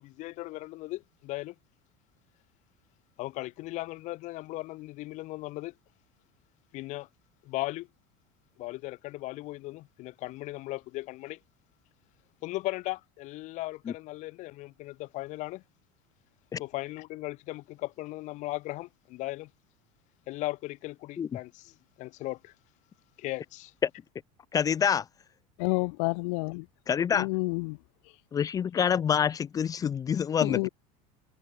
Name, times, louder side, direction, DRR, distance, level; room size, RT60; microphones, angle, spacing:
voice 1, 0.0-1.5 3.2-5.7 6.7-7.1 7.4-7.9 8.6-11.4 12.4-15.6 16.6-19.5 20.3-22.5 23.2-23.7, left 19 dB, 45° left, 7.6 m, -37 dB
voice 2, 24.5-25.0 26.9-27.3 28.3-30.7, left 7 dB, 20° left, 1.4 m, -26 dB
voice 3, 25.6-26.7 27.1-27.8 30.4-30.7, left 31 dB, 65° left, 5.3 m, -29 dB
cardioid pair, 165°, 17 cm